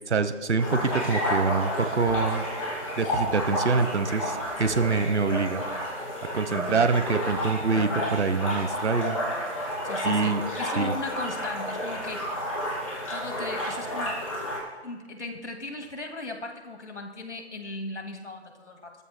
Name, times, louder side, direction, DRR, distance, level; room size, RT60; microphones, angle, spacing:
voice 1, 0.1-2.5 3.0-5.6 6.3-9.2 10.0-10.4 10.8-10.9, right 4 dB, 75° right, 10 dB, 1.1 m, -25 dB
sound 1, 0.6-14.6, equal, 30° left, 4.1 m, -31 dB
voice 2, 6.5-7.0 7.8-8.1 9.8-12.3 13.1-14.2 14.8-18.9, left 2 dB, 80° left, 4 dB, 2.2 m, -37 dB
22.0 x 14.0 x 2.2 m, 1.3 s
hypercardioid pair, 175°, 34 cm